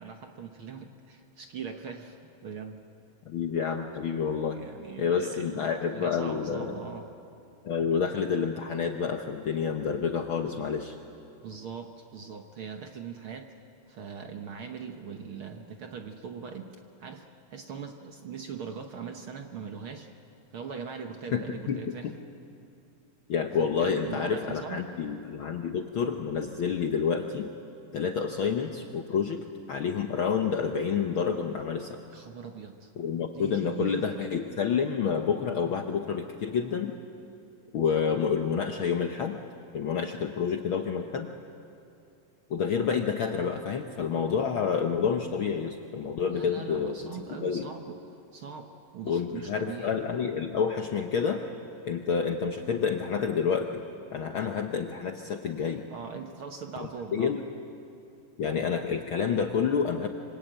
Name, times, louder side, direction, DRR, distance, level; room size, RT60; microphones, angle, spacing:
voice 1, 0.0-2.2 2.4-2.8 4.5-7.1 11.4-13.5 13.9-16.7 17.0-17.2 17.5-20.1 20.5-22.1 23.6-24.9 32.1-32.9 33.3-34.2 46.3-48.0 48.3-49.9 55.9-57.4, right 6 dB, 60° right, 5 dB, 1.4 m, -41 dB
voice 2, 3.2-4.6 5.0-6.8 7.6-11.0 21.3-22.1 23.3-27.5 27.9-32.0 33.0-36.9 37.7-39.4 39.7-41.3 42.5-47.7 49.1-51.4 51.9-53.8 54.1-55.9 56.8-57.4 58.4-60.1, left 6 dB, 80° left, 5 dB, 1.1 m, -29 dB
26.0 x 25.0 x 8.9 m, 2.6 s
omnidirectional pair, 3.8 m